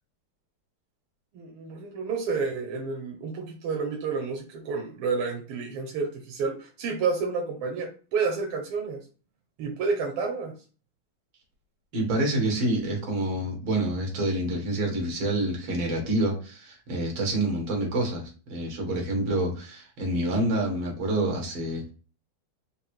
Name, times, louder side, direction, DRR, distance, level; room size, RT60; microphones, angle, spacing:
voice 1, 1.3-9.0 9.6-10.5 19.0-19.1, right 4 dB, 90° right, 2 dB, 1.7 m, -30 dB
voice 2, 11.9-21.9, right 1 dB, 65° right, 1 dB, 2.2 m, -27 dB
5.0 x 2.0 x 4.5 m, 0.37 s
omnidirectional pair, 2.4 m